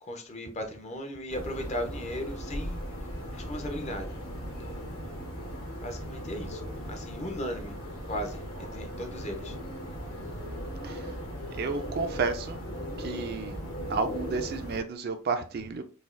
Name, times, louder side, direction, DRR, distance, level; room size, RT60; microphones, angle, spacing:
voice 1, 0.0-2.8 3.3-4.1 5.8-7.7 8.1-9.6, equal, 30° left, 0.5 m, -37 dB
sound 1, 1.3-14.8, equal, 70° left, 1.2 m, -38 dB
voice 2, 11.6-12.6 13.0-13.6 13.9-15.8, right 4 dB, 45° right, 0.4 m, -31 dB
4.0 x 2.2 x 2.5 m
head